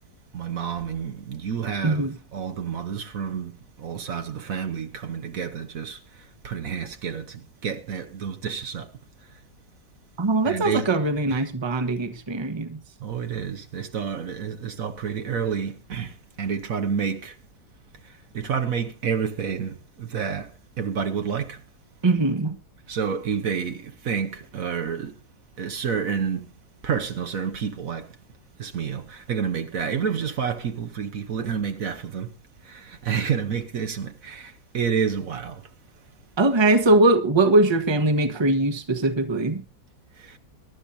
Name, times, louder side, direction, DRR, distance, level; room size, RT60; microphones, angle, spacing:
voice 1, 0.3-3.5 3.8-6.0 6.4-8.9 10.4-11.0 11.3-11.4 13.0-16.1 16.4-17.3 18.3-20.5 20.8-21.6 22.9-25.1 25.6-26.5 26.8-28.1 28.6-32.3 32.7-35.6 40.2-40.3, right 7 dB, 60° right, 1.3 m, -29 dB
voice 2, 1.8-2.2 10.2-12.8 22.0-22.6 36.4-39.6, right 2 dB, 20° right, 1.0 m, -21 dB
22.5 x 12.0 x 2.7 m
omnidirectional pair, 1.7 m